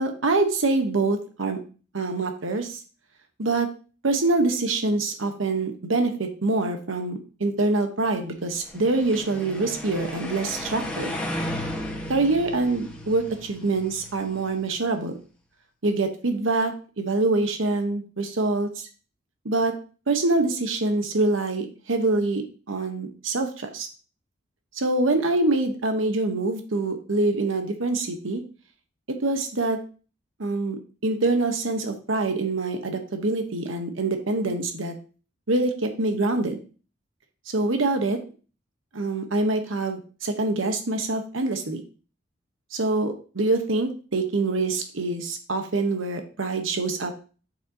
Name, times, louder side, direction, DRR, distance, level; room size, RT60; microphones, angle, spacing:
voice 1, 0.0-1.6 1.9-2.8 3.4-3.7 4.0-11.1 12.1-15.1 15.8-18.9 19.4-19.7 20.1-23.9 24.7-28.4 29.1-29.8 30.4-34.9 35.5-36.6 37.5-38.2 38.9-41.8 42.7-47.2, right 2 dB, 90° right, 6 dB, 1.1 m, -25 dB
sound 1, 8.6-14.7, left 1 dB, 5° left, 1.3 m, -35 dB
8.0 x 7.3 x 2.8 m, 0.37 s
head